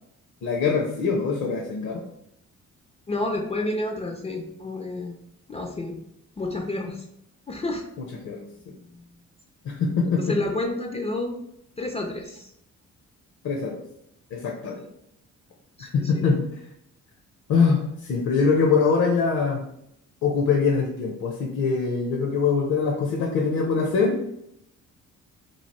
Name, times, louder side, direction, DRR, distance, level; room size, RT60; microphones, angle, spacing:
voice 1, 0.4-2.0 8.2-8.4 9.6-10.4 13.4-13.8 14.3-14.8 15.8-16.4 17.5-19.6 20.2-24.2, left 5 dB, 65° left, 1 dB, 0.7 m, -23 dB
voice 2, 3.1-5.2 5.5-6.1 6.4-7.1 7.5-7.9 8.9-9.0 10.1-11.4 11.8-12.5 14.8-14.9 15.8-16.3, left 2 dB, 20° left, 3 dB, 0.4 m, -30 dB
3.1 x 2.4 x 4.1 m, 0.78 s
cardioid pair, 90°, 30 cm